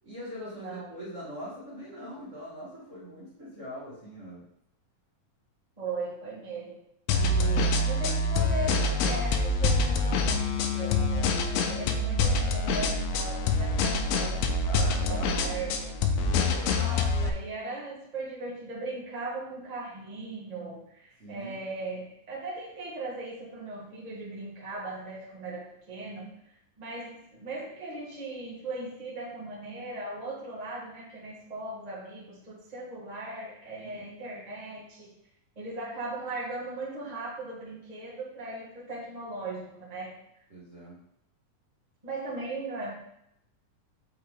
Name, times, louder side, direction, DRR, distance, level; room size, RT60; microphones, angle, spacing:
voice 1, 0.0-4.5 14.6-15.6 16.2-16.6 21.2-21.6 33.8-34.0 40.5-41.0, equal, 60° right, -8 dB, 0.7 m, -42 dB
voice 2, 0.5-0.9 5.8-6.8 7.1-15.9 16.7-26.4 26.8-35.1 35.5-40.4 42.0-42.9, right 2 dB, 80° right, -6 dB, 0.3 m, -38 dB
sound 1, 7.1-17.3, left 3 dB, 85° left, 2.5 m, -26 dB
6.6 x 4.5 x 3.7 m, 0.76 s
omnidirectional pair, 4.2 m